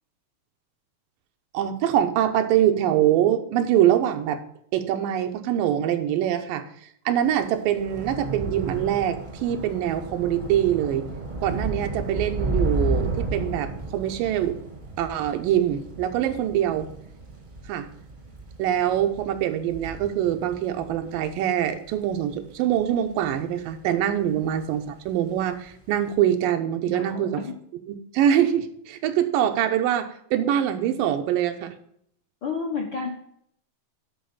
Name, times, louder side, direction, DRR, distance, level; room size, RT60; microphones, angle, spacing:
voice 1, 1.5-4.4 4.7-6.6 7.1-11.1 11.4-14.6 15.0-16.9 17.7-17.9 18.6-27.4 27.9-31.7, right 10 dB, 85° right, 7 dB, 2.6 m, -24 dB
Thunder / Rain, 7.3-23.8 24.2-24.6 24.9-25.1, right 2 dB, 35° right, 0.7 m, -33 dB
voice 2, 26.9-27.5 32.4-33.1, left 5 dB, 60° left, 0 dB, 1.2 m, -32 dB
11.0 x 4.4 x 7.2 m, 0.70 s
omnidirectional pair, 3.8 m